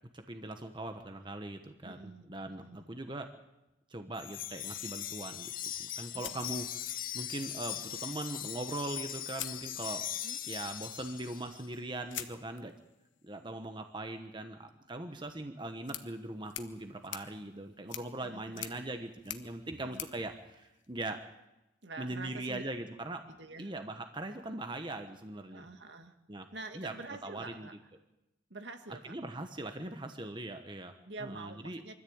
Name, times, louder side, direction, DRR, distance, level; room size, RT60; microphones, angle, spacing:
voice 1, 0.1-3.3 3.9-5.5 6.0-10.1 10.5-12.7 13.2-21.2 22.0-23.3 23.6-25.7 26.3-26.5 26.7-26.9 27.2-27.7 29.1-30.9 31.2-31.8, right 2 dB, 25° right, 6 dB, 1.1 m, -40 dB
voice 2, 1.8-2.9 6.1-6.5 10.1-10.4 18.2-18.7 19.8-20.0 21.8-22.6 23.3-23.7 25.5-26.2 26.5-27.7 28.5-29.1 31.0-31.9, right 3 dB, 65° right, 6 dB, 2.0 m, -47 dB
Wind chime, 4.2-11.7, left 11 dB, 45° left, 0.9 m, -40 dB
sound 1, 6.2-7.3 8.7-8.8 9.3-10.3 12.1-21.3, left 11 dB, 80° left, 1.4 m, -47 dB
24.0 x 13.5 x 8.8 m, 0.96 s
head